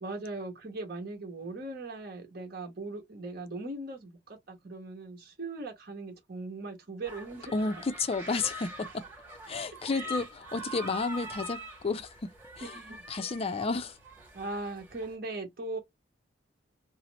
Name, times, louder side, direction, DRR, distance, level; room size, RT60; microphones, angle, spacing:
voice 1, 0.0-7.8 9.9-10.2 12.6-13.0 14.3-15.8, right 2 dB, 55° right, 1.1 m, -39 dB
sound 1, 7.0-15.2, equal, 10° right, 1.2 m, -43 dB
voice 2, 7.5-9.0 9.5-12.3 12.6-12.7 13.1-14.0, left 4 dB, 30° left, 0.4 m, -32 dB
2.8 x 2.0 x 3.9 m
head